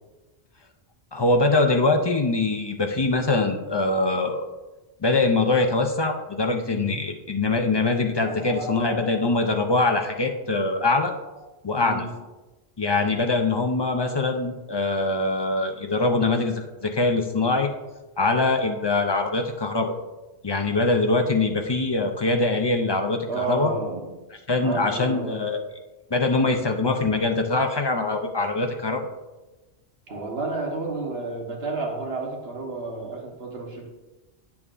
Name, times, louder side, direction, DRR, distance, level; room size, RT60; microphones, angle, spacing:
voice 1, 1.1-4.4 5.0-11.1 11.6-12.0 12.8-17.7 18.2-19.9 20.4-23.7 24.5-25.6 26.1-29.1, left 3 dB, 40° left, 4 dB, 0.4 m, -23 dB
voice 2, 8.2-9.1 11.8-12.1 23.3-24.1 24.6-25.4 30.1-33.9, right 3 dB, 65° right, 0 dB, 1.5 m, -31 dB
9.6 x 7.1 x 2.5 m, 1.1 s
omnidirectional pair, 1.1 m